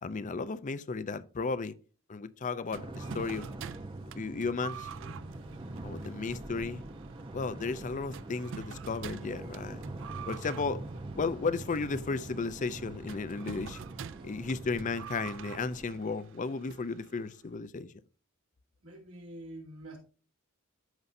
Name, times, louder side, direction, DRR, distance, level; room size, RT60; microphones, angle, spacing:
voice 1, 0.0-1.7 2.1-3.5 4.1-4.9 5.8-6.8 7.3-9.8 10.3-10.9 11.2-13.8 14.2-17.9, left 4 dB, 35° left, 0.5 m, -34 dB
sound 1, 2.7-15.9, right 2 dB, 25° right, 0.8 m, -44 dB
sound 2, 2.7-17.4, right 8 dB, 65° right, 0.4 m, -47 dB
voice 2, 18.8-20.0, right 1 dB, 80° right, 3.3 m, -46 dB
14.0 x 5.4 x 2.6 m
head